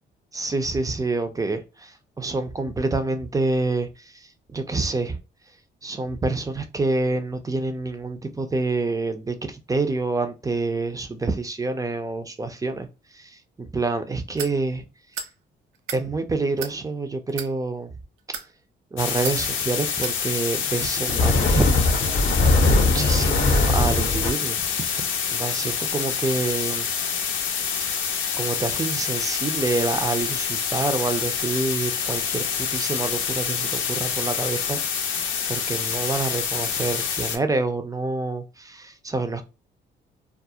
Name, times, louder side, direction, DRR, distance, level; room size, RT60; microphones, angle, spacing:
voice 1, 0.3-3.9 4.1-5.2 5.8-12.9 13.1-14.8 15.9-17.9 18.9-21.8 22.7-24.7 25.0-26.9 28.4-39.4, right 3 dB, 15° right, 0.4 m, -27 dB
sound 1, 14.4-14.6 15.1-15.3 15.7-16.0 16.6-16.8 17.3-17.5 18.2-18.5 19.2-19.4 20.0-20.2, right 7 dB, 90° right, 0.4 m, -33 dB
sound 2, 19.0-37.4, left 7 dB, 80° left, 0.5 m, -27 dB
sound 3, 21.0-24.3, left 2 dB, 40° left, 0.6 m, -20 dB
2.3 x 2.0 x 2.7 m
cardioid pair, 90°, 20 cm